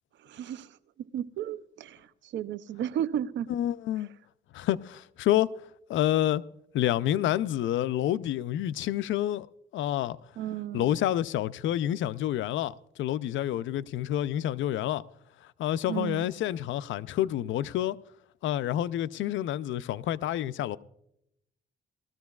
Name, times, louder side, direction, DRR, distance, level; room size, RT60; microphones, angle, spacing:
voice 1, 0.2-3.5 4.0-4.1 10.4-11.0 15.9-16.3, right 10 dB, 70° right, 0.6 m, -34 dB
voice 2, 3.5-4.1 4.5-5.5 5.9-6.4 6.7-9.5 9.7-10.2 10.7-15.0 15.6-18.0 18.4-20.8, left 12 dB, 75° left, 0.5 m, -28 dB
19.5 x 13.5 x 2.3 m
cardioid pair, 90°, 20 cm